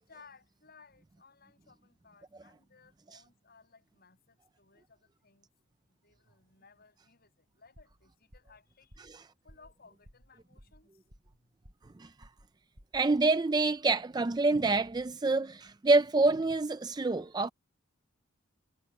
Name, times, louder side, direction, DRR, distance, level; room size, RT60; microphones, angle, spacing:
voice 1, 0.1-5.5 5.9-9.0 9.4-11.5, left 4 dB, 45° left, 7.4 m, -61 dB
sound 1, 7.8-8.0 8.3-8.6 8.9-9.2 9.5-9.7 10.0-10.3 10.6-11.4 11.6-11.9 12.2-12.5 12.8-13.1, equal, 60° right, 6.9 m, -56 dB
voice 2, 12.9-17.5, right 3 dB, 20° right, 0.4 m, -27 dB
head